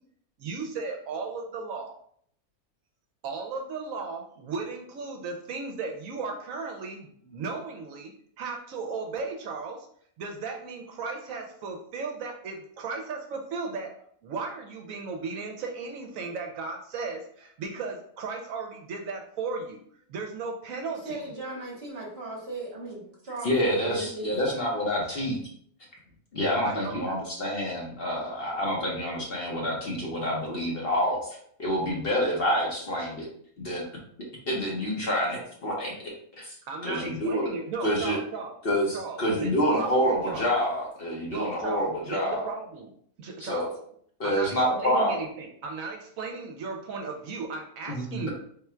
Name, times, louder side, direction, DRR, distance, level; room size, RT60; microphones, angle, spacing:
voice 1, 0.4-1.9 3.2-8.1 8.4-9.9 10.2-13.9 14.2-19.8 20.1-21.2 26.6-27.1 36.7-38.5 38.9-40.5 41.3-42.9 43.2-43.7 44.2-48.3, right 4 dB, 70° right, 2 dB, 1.0 m, -35 dB
voice 2, 21.0-24.4, right 2 dB, 45° right, -3 dB, 1.2 m, -37 dB
voice 3, 23.4-25.4 26.3-33.3 33.6-33.8 34.5-35.9 36.3-36.6 36.8-37.4 37.8-38.2 38.6-42.4 43.4-43.7 44.2-45.1 47.9-48.3, equal, 45° left, -2 dB, 1.0 m, -27 dB
3.7 x 2.3 x 4.3 m, 0.63 s
omnidirectional pair, 1.5 m